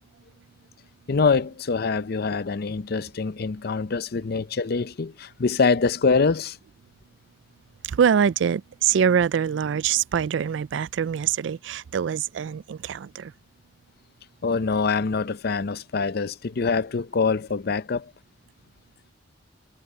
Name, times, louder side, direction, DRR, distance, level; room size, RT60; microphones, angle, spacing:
voice 1, 1.1-6.6 14.4-18.1, left 4 dB, 55° left, 0.6 m, -24 dB
voice 2, 7.8-13.3, right 7 dB, 75° right, 0.4 m, -24 dB
head